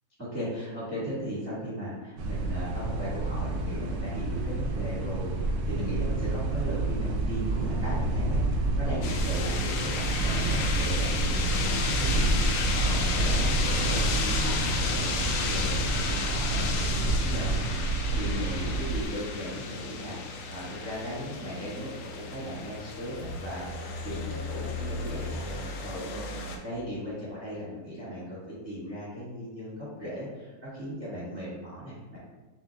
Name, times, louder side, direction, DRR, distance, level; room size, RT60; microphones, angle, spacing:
voice 1, 0.2-32.2, equal, 10° right, -10 dB, 1.3 m, -37 dB
sound 1, 2.2-19.1, right 2 dB, 75° right, 1.2 m, -28 dB
sound 2, 9.0-26.6, left 4 dB, 85° left, 0.7 m, -33 dB
7.0 x 2.9 x 2.3 m, 1.2 s
omnidirectional pair, 2.0 m